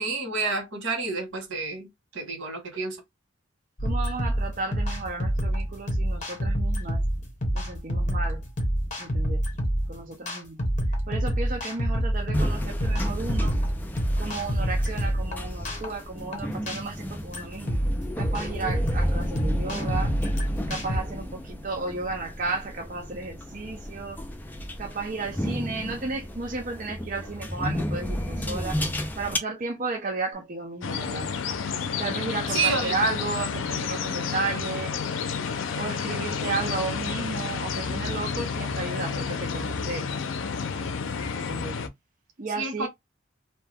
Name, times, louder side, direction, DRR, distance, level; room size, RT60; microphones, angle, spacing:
voice 1, 0.0-1.9 2.1-3.0 32.5-33.0 42.6-42.9, right 4 dB, 90° right, 1.4 m, -29 dB
sound 1, 3.8-21.0, equal, 40° left, 1.2 m, -27 dB
voice 2, 3.8-7.0 7.5-8.4 9.0-9.4 9.9-10.6 11.1-13.6 14.2-17.8 18.2-20.2 20.7-24.2 24.8-28.8 29.2-31.3 32.0-34.9 35.7-40.1 41.3-41.8 42.4-42.9, right 3 dB, 40° right, 0.5 m, -33 dB
sound 2, 12.3-29.4, equal, 10° left, 0.4 m, -33 dB
sound 3, 30.8-41.9, left 5 dB, 80° left, 0.5 m, -30 dB
2.7 x 2.2 x 3.3 m
head